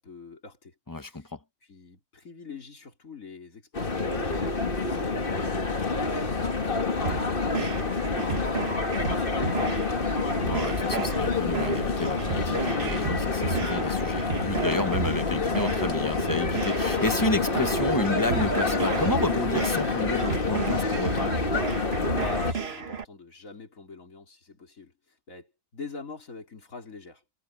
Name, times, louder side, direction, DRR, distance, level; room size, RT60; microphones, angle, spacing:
voice 1, 0.0-1.3 1.6-10.2 22.0-27.2, left 4 dB, 70° left, 3.9 m, -45 dB
voice 2, 0.9-1.4 10.4-21.3, left 2 dB, 15° left, 0.8 m, -31 dB
sound 1, 3.7-22.5, left 3 dB, 40° left, 2.1 m, -27 dB
sound 2, 7.0-23.0, right 5 dB, 50° right, 1.5 m, -34 dB
omnidirectional pair, 1.4 m